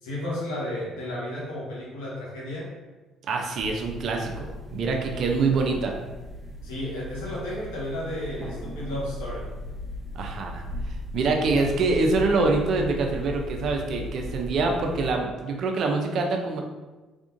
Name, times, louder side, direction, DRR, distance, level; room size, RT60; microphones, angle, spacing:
voice 1, 0.0-2.7 5.1-5.3 6.6-9.5, left 1 dB, 85° left, -5 dB, 1.2 m, -33 dB
voice 2, 3.3-5.9 10.1-10.6 11.1-16.6, right 3 dB, 60° right, 2 dB, 0.6 m, -25 dB
sound 1, 3.6-15.1, equal, 5° left, 1.1 m, -37 dB
3.5 x 3.5 x 2.6 m, 1.2 s
supercardioid pair, 65°, 0 cm